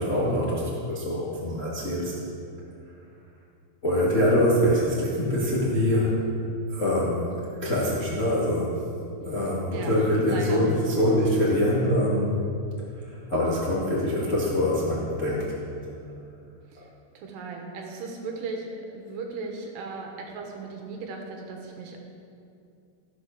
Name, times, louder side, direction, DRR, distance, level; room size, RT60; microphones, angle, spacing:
voice 1, 0.0-2.1 3.8-6.2 6.7-8.8 9.2-12.5 13.0-15.5, left 1 dB, 35° left, -7 dB, 1.3 m, -24 dB
voice 2, 9.7-10.7 16.7-16.9 17.1-22.0, right 4 dB, 75° right, 1 dB, 3.3 m, -37 dB
14.5 x 8.0 x 6.6 m, 2.5 s
omnidirectional pair, 4.9 m